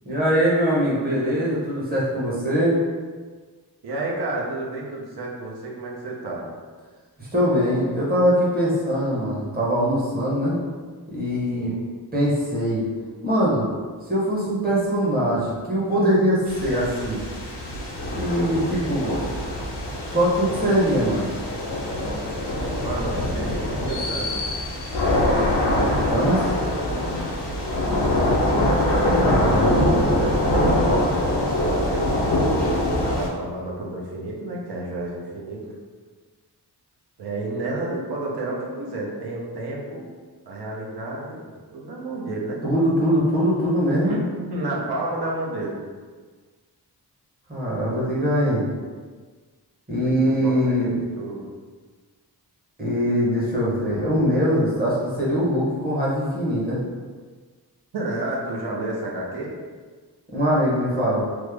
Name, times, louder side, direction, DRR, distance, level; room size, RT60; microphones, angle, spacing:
voice 1, 0.0-2.7 7.2-10.6 11.1-11.7 12.1-12.8 13.2-13.6 14.1-17.2 18.1-19.2 20.1-21.3 25.9-26.5 29.2-29.9 42.6-44.2 47.5-48.6 49.9-50.9 52.8-56.8 60.3-61.2, equal, 20° right, -7 dB, 0.9 m, -22 dB
voice 2, 3.8-6.5 11.5-11.8 22.8-24.4 27.2-27.5 29.8-31.2 31.6-32.7 33.0-35.7 37.2-40.1 40.5-41.4 41.7-42.6 44.0-45.8 50.0-51.5 57.9-59.5, right 2 dB, 70° right, -3 dB, 0.7 m, -31 dB
sound 1, 16.5-33.3, left 1 dB, 90° left, 0.8 m, -23 dB
3.2 x 2.0 x 3.4 m, 1.5 s
wide cardioid pair, 145°, 40 cm